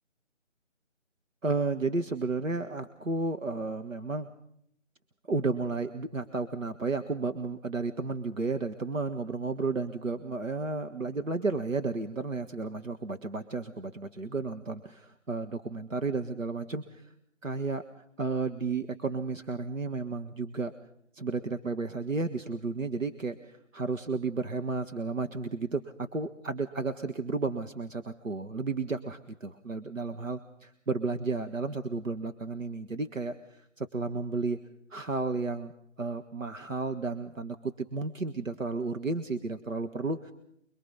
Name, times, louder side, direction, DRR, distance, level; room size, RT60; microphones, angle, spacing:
voice 1, 1.4-4.3 5.3-17.1 17.4-17.8 18.2-20.7 21.1-34.6 34.9-35.7 36.0-40.3, right 3 dB, 85° right, 7 dB, 1.7 m, -32 dB
24.0 x 23.0 x 5.7 m, 0.70 s
figure-of-eight pair, 180°, 38 cm